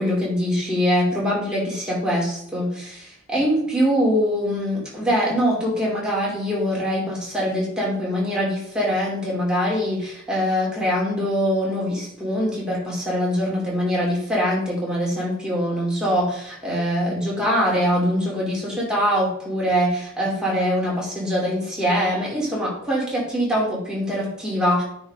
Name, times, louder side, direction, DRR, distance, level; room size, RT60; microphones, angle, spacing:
voice 1, 0.0-24.8, equal, 5° right, -5 dB, 3.0 m, -23 dB
9.2 x 5.2 x 3.7 m, 0.70 s
head